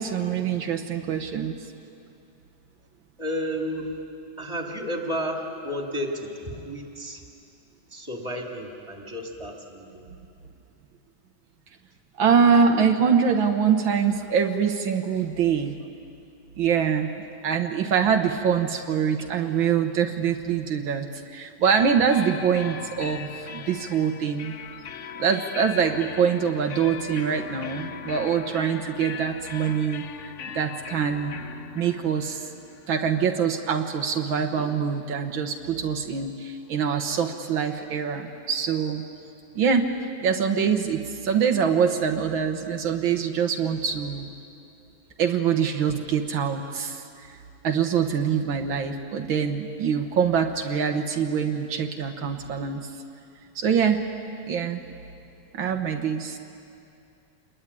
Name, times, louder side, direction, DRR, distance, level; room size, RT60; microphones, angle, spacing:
voice 1, 0.0-1.5 12.2-15.8 16.6-17.1 17.4-24.5 25.2-31.4 31.8-32.5 32.9-39.0 39.6-39.9 40.2-44.3 45.2-47.4 47.6-52.9 53.6-54.0 54.5-54.8 55.5-56.4, right 7 dB, 80° right, 4 dB, 2.0 m, -24 dB
voice 2, 3.2-3.9 4.4-7.2 7.9-10.1 19.2-19.3, equal, 15° right, 1 dB, 3.1 m, -32 dB
sound 1, 21.6-35.2, left 8 dB, 60° left, 0.8 m, -40 dB
27.5 x 21.5 x 10.0 m, 2.7 s
omnidirectional pair, 2.2 m